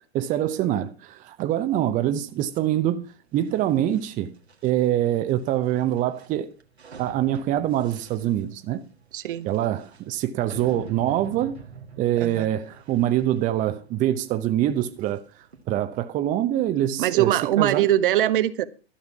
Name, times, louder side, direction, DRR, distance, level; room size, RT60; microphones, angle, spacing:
voice 1, 0.1-4.3 4.6-6.5 7.0-8.8 9.4-11.6 12.0-15.2 15.7-17.3 17.6-17.9, right 12 dB, 25° right, 0.8 m, -24 dB
sound 1, 2.4-15.6, right 5 dB, 85° right, 1.8 m, -46 dB
voice 2, 9.1-9.5 12.2-12.5 17.0-18.7, right 12 dB, 55° right, 0.9 m, -22 dB
13.0 x 6.6 x 7.0 m
figure-of-eight pair, 105°, 31 cm